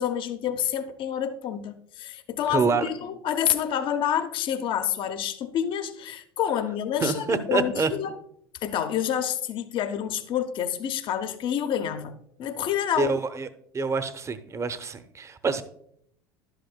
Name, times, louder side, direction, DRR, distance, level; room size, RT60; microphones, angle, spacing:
voice 1, 0.0-8.1 8.6-12.1 12.4-13.1, left 9 dB, 45° left, 0.7 m, -28 dB
voice 2, 2.5-2.9 7.0-7.9 13.0-13.5 13.7-15.6, right 4 dB, 25° right, 0.8 m, -26 dB
11.5 x 8.0 x 2.2 m
hypercardioid pair, 70°, 11 cm